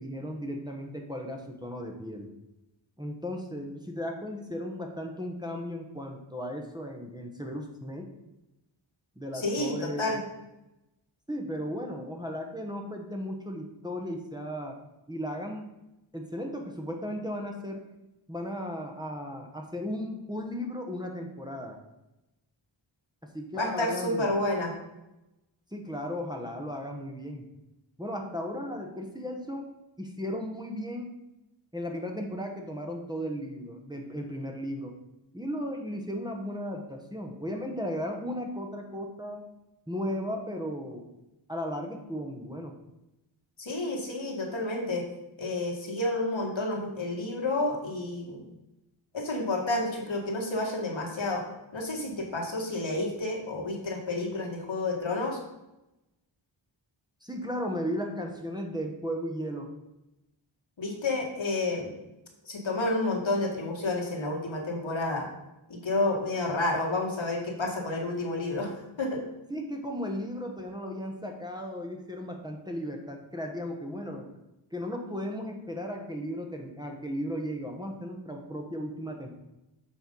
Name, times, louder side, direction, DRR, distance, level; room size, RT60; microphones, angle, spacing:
voice 1, 0.0-2.3 3.0-8.1 9.2-10.2 11.3-14.8 15.1-15.7 16.1-17.8 18.3-21.8 23.3-24.3 25.7-27.5 28.0-29.6 30.0-31.1 31.7-34.9 35.3-39.4 39.9-41.0 41.5-42.7 57.2-59.7 69.5-74.3 74.7-79.3, equal, 10° right, 1 dB, 1.1 m, -35 dB
voice 2, 9.3-10.2 23.5-24.7 43.6-45.0 45.4-48.4 49.1-51.4 51.7-55.4 60.8-61.9 62.4-65.3 65.7-68.7 69.0-69.2, left 2 dB, 70° left, -1 dB, 1.8 m, -30 dB
7.2 x 4.6 x 5.3 m, 0.94 s
wide cardioid pair, 60°, 48 cm